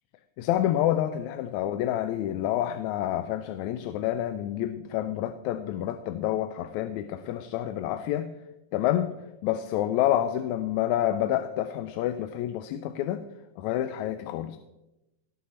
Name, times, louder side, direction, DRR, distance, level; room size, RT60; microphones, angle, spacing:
voice 1, 0.4-8.3 8.7-9.1 9.4-13.2 13.6-14.6, left 12 dB, 80° left, 10 dB, 1.9 m, -28 dB
18.5 x 6.2 x 4.2 m, 0.95 s
omnidirectional pair, 3.4 m